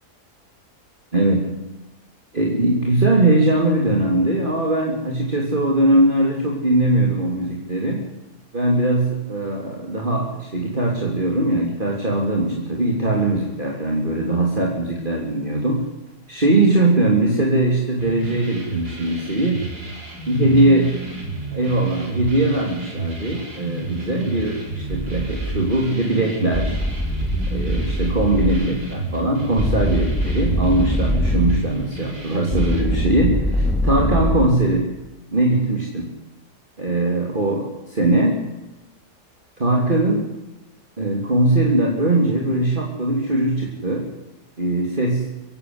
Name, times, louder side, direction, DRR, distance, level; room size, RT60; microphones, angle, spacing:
voice 1, 1.1-1.5 2.3-8.0 8.5-15.8 16.3-19.6 20.3-20.9 21.5-26.8 27.5-34.8 35.3-36.1 36.8-38.4 39.6-40.2 41.0-44.0 44.6-45.3, right 2 dB, 30° right, -1 dB, 3.4 m, -20 dB
sound 1, 18.0-32.8, right 2 dB, 75° right, 5.9 m, -32 dB
sound 2, 24.9-25.6 26.5-28.7 29.6-31.6 32.5-34.5, equal, ahead, 3.1 m, -22 dB
24.5 x 16.0 x 9.7 m, 0.99 s
omnidirectional pair, 1.7 m